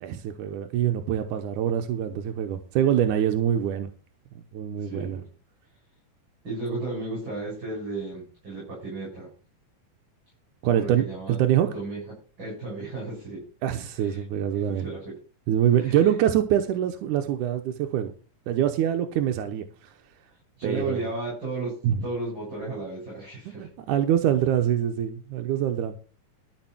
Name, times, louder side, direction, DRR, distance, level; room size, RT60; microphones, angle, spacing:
voice 1, 0.0-3.9 4.5-5.2 10.6-11.7 13.6-14.9 15.5-18.1 18.5-19.6 20.6-21.0 21.8-22.0 23.5-25.9, right 10 dB, 85° right, 6 dB, 2.3 m, -24 dB
voice 2, 4.8-5.3 6.4-9.3 10.7-11.4 11.7-12.0 12.4-13.4 14.0-14.2 14.5-15.1 15.8-16.1 20.6-21.7 22.0-23.7, right 2 dB, 35° right, -4 dB, 7.2 m, -34 dB
13.0 x 6.2 x 6.0 m, 0.38 s
omnidirectional pair, 3.6 m